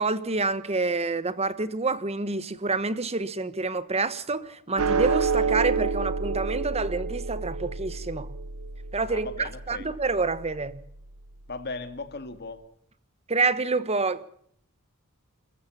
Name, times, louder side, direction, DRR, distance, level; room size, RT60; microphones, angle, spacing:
voice 1, 0.0-8.3 8.9-10.8 13.3-14.3, right 3 dB, 30° right, 1.2 m, -28 dB
sound 1, 4.8-11.3, right 4 dB, 80° right, 1.0 m, -29 dB
voice 2, 9.1-9.9 11.5-12.6, left 3 dB, 50° left, 2.2 m, -37 dB
27.5 x 14.5 x 7.1 m
head